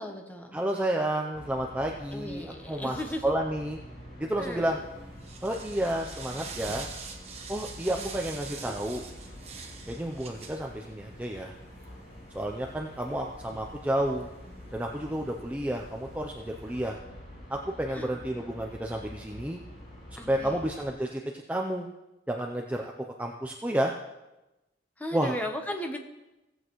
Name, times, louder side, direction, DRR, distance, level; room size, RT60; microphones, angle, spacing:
voice 1, 0.0-0.6 2.1-3.3 4.4-4.7 7.9-8.2 17.9-18.1 20.2-20.6 25.0-26.0, equal, 10° left, 4 dB, 0.9 m, -36 dB
voice 2, 0.5-3.0 3.2-3.8 4.2-4.8 5.4-6.9 7.5-9.0 9.9-11.5 12.3-14.3 14.7-17.0 17.5-19.6 20.1-21.2 21.5-21.9 22.3-22.9 23.2-23.9 25.1-25.4, right 1 dB, 10° right, 0 dB, 0.5 m, -31 dB
sound 1, 1.3-20.9, equal, 65° left, 4.4 m, -47 dB
sound 2, 4.5-16.9, right 4 dB, 35° right, 1.2 m, -46 dB
16.5 x 8.1 x 3.1 m, 1.0 s
head